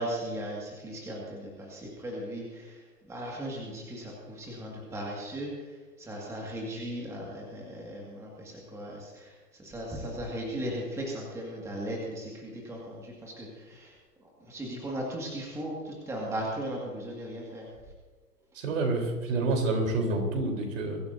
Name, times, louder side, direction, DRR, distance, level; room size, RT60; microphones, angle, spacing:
voice 1, 0.0-2.7 3.1-5.5 6.0-9.3 9.6-13.9 14.5-17.7, right 1 dB, 5° right, -2 dB, 1.9 m, -37 dB
voice 2, 18.5-21.0, right 2 dB, 50° right, 2 dB, 3.7 m, -28 dB
23.5 x 14.5 x 2.7 m, 1.4 s
hypercardioid pair, 130°, 49 cm